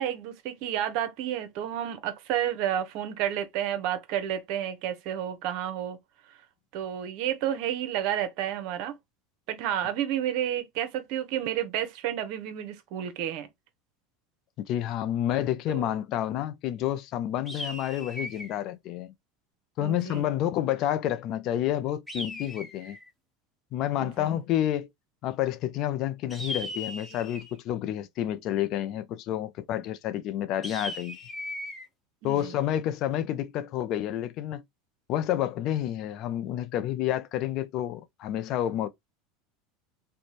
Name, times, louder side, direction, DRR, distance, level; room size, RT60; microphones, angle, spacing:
voice 1, 0.0-6.0 6.7-9.0 9.5-13.5 15.7-15.8 19.8-20.2 24.0-24.3 32.2-32.5, right 10 dB, 65° right, 0.7 m, -31 dB
voice 2, 14.7-19.1 19.8-23.0 23.7-24.9 25.2-31.2 32.2-34.6 35.1-38.9, left 12 dB, 55° left, 0.4 m, -29 dB
sound 1, 17.5-18.6 22.1-23.1 26.3-27.6 30.6-31.9, left 1 dB, 5° left, 1.1 m, -38 dB
2.6 x 2.1 x 2.9 m
hypercardioid pair, 95°, 0 cm